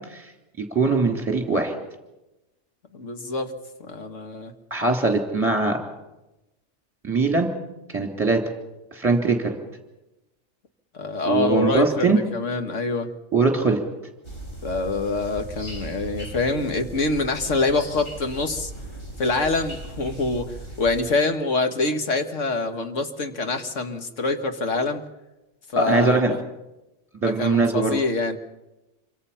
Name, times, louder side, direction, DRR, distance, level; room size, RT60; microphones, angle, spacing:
voice 1, 0.6-1.7 4.7-5.8 7.0-7.5 7.9-8.4 8.9-9.6 11.2-12.2 13.3-13.8 25.8-26.3 27.2-27.9, right 3 dB, 10° right, 2 dB, 3.2 m, -21 dB
voice 2, 2.9-3.5 3.8-4.5 10.9-13.1 14.6-18.7 19.2-25.0 25.7-26.4 27.2-28.4, left 3 dB, 90° left, 6 dB, 1.9 m, -25 dB
sound 1, 14.2-21.0, right 2 dB, 50° left, 4.0 m, -38 dB
27.0 x 24.0 x 5.7 m, 1.0 s
omnidirectional pair, 1.2 m